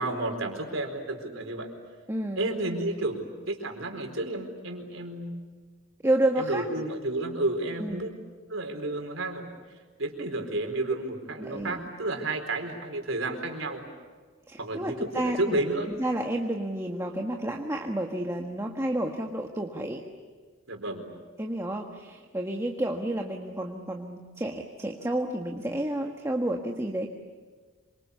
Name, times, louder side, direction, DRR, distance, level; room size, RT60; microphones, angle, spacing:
voice 1, 0.0-1.7 2.4-5.5 6.4-8.1 8.5-9.5 10.0-13.8 14.6-15.9 20.7-21.1, right 2 dB, 80° right, 4 dB, 4.4 m, -31 dB
voice 2, 2.1-2.5 6.0-6.6 7.8-8.1 11.4-11.9 14.5-15.6 16.0-20.0 21.4-27.1, right 1 dB, 15° right, 1 dB, 1.5 m, -30 dB
26.5 x 25.5 x 8.3 m, 1.5 s
head